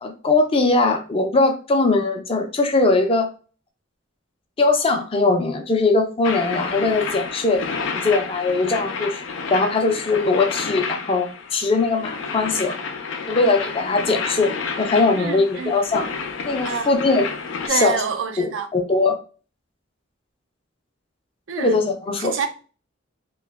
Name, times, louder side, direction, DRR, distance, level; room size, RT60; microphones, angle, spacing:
voice 1, 0.0-3.3 4.6-7.6 7.9-9.2 9.5-12.8 13.3-14.5 14.8-16.1 16.4-17.3 17.7-18.0 18.4-19.2 21.6-22.3, left 3 dB, 30° left, 0.5 m, -20 dB
sound 1, 6.2-17.7, left 5 dB, 85° left, 0.5 m, -30 dB
voice 2, 15.1-15.7 16.6-16.9 17.7-18.7 21.5-21.7 22.2-22.5, right 6 dB, 80° right, 0.5 m, -26 dB
2.8 x 2.3 x 3.4 m
head